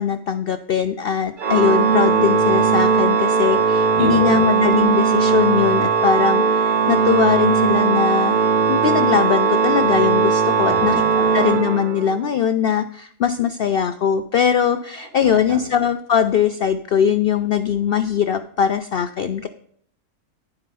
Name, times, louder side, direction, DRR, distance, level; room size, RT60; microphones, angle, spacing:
voice 1, 0.0-8.4 8.7-11.0 11.3-19.5, left 8 dB, 70° left, 9 dB, 0.5 m, -21 dB
Organ, 1.4-12.3, right 5 dB, 50° right, 0.6 m, -18 dB
voice 2, 4.0-4.5 10.7-11.5 15.2-15.6, right 3 dB, 75° right, -1 dB, 3.0 m, -29 dB
10.5 x 4.9 x 5.4 m, 0.66 s
omnidirectional pair, 1.5 m